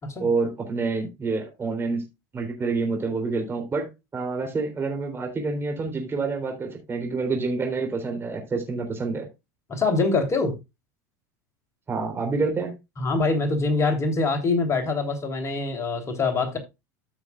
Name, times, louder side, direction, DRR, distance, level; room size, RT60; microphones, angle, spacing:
voice 1, 0.2-2.0 2.3-9.3 11.9-12.7, right 4 dB, 25° right, 3.6 m, -27 dB
voice 2, 9.7-10.5 13.0-16.6, left 3 dB, 30° left, 3.2 m, -24 dB
14.0 x 6.2 x 2.4 m
hypercardioid pair, 90°, 9 cm